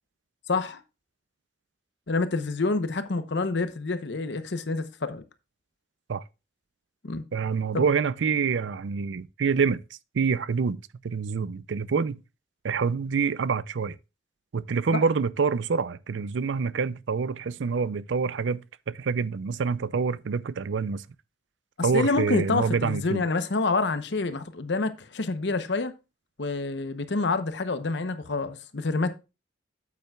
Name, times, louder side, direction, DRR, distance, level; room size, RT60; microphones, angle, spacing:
voice 1, 0.5-0.8 2.1-5.2 7.0-7.2 7.7-7.8 14.9-15.0 21.8-25.9 26.4-29.1, left 3 dB, 70° left, 0.8 m, -27 dB
voice 2, 7.3-9.8 10.1-10.8 11.0-12.2 12.6-14.0 14.5-21.0 21.8-23.2, right 5 dB, 80° right, 0.5 m, -26 dB
8.8 x 8.3 x 2.3 m
head